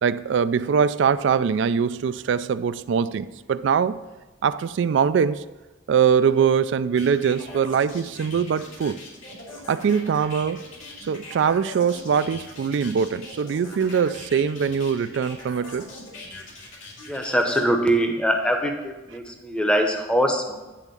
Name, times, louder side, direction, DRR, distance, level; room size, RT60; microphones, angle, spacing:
voice 1, 0.0-4.0 4.4-5.5 5.9-9.0 9.7-10.6 11.1-15.9, right 7 dB, 70° right, 0.3 m, -22 dB
sound 1, 7.0-17.6, left 2 dB, 85° left, 2.7 m, -41 dB
voice 2, 17.1-20.5, equal, 5° left, 0.7 m, -23 dB
9.9 x 3.6 x 6.8 m
head